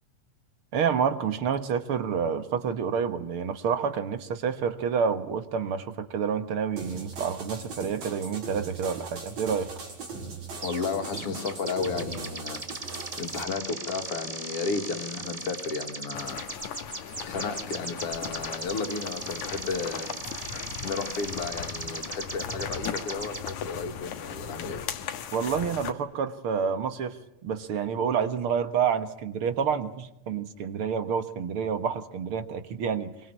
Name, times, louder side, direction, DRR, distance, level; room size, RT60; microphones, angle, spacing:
voice 1, 0.7-9.7 25.3-27.2 27.4-33.1, right 7 dB, 55° right, 10 dB, 1.9 m, -28 dB
sound 1, 6.8-13.4, right 4 dB, 75° right, 5.6 m, -39 dB
voice 2, 10.6-16.4 17.2-20.1 20.4-20.5 20.8-24.8, left 4 dB, 55° left, 5 dB, 3.2 m, -33 dB
sound 2, 10.6-10.9 11.2-23.5, right 2 dB, 20° right, 1.1 m, -38 dB
sound 3, 16.1-25.9, left 8 dB, 85° left, 2.8 m, -38 dB
24.0 x 23.5 x 9.7 m, 0.83 s
omnidirectional pair, 3.3 m